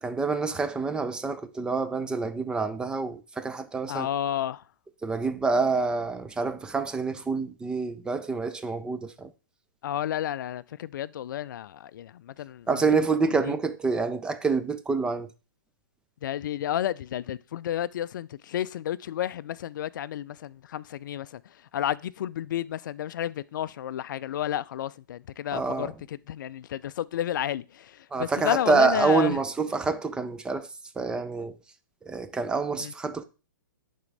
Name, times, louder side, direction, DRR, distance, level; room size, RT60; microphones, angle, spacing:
voice 1, 0.0-4.1 5.0-9.3 12.7-15.3 25.5-25.9 28.1-30.7 31.0-31.5 32.0-33.2, right 4 dB, 5° right, 0.4 m, -27 dB
voice 2, 3.9-4.6 9.8-13.0 13.2-13.6 16.2-21.4 21.7-29.4 32.8-32.9, left 11 dB, 65° left, 0.4 m, -31 dB
10.5 x 3.7 x 3.2 m
hypercardioid pair, 135°, 11 cm